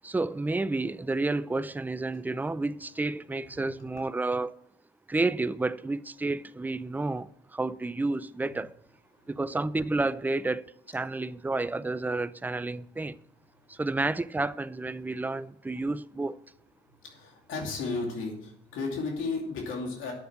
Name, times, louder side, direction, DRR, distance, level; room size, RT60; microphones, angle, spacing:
voice 1, 0.0-4.6 5.1-8.7 9.3-13.2 13.7-16.4, right 2 dB, 10° right, 0.5 m, -30 dB
voice 2, 17.0-20.1, left 3 dB, 85° left, 2.7 m, -34 dB
9.3 x 6.9 x 7.8 m
cardioid pair, 90°, 20 cm